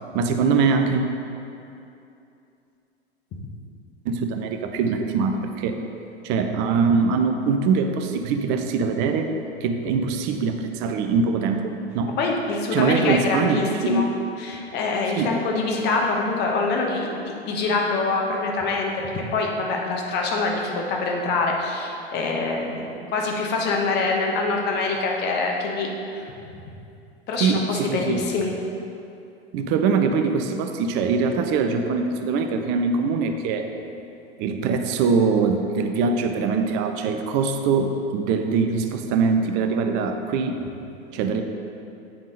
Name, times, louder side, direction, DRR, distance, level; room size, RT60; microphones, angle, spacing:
voice 1, 0.1-1.0 4.1-5.8 6.2-9.3 9.6-12.2 12.7-14.1 15.1-15.3 27.4-28.2 29.5-33.7 34.4-40.6 41.1-41.4, right 5 dB, 35° right, 6 dB, 0.5 m, -23 dB
voice 2, 12.2-14.1 14.4-26.3 27.3-28.5, left 3 dB, 30° left, 0 dB, 1.0 m, -25 dB
9.2 x 3.6 x 3.9 m, 2.7 s
figure-of-eight pair, 95°, 33 cm